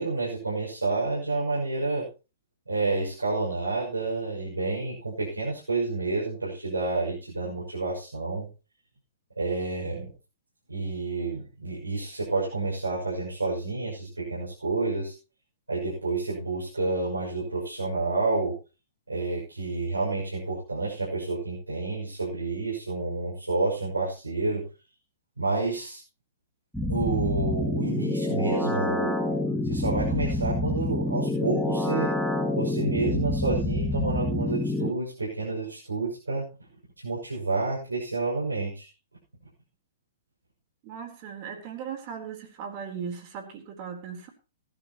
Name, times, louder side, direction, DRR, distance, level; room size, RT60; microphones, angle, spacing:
voice 1, 0.0-2.1 2.7-8.5 9.4-10.1 10.7-15.1 15.7-18.5 19.1-24.6 25.4-26.0 26.9-29.2 29.7-32.1 32.4-36.4 37.0-38.9, right 3 dB, 85° right, -6 dB, 6.6 m, -29 dB
sound 1, 26.7-34.9, left 2 dB, ahead, 2.1 m, -27 dB
voice 2, 40.8-44.3, right 7 dB, 40° right, 4 dB, 3.9 m, -38 dB
18.5 x 12.0 x 3.1 m, 0.32 s
figure-of-eight pair, 110°, 0 cm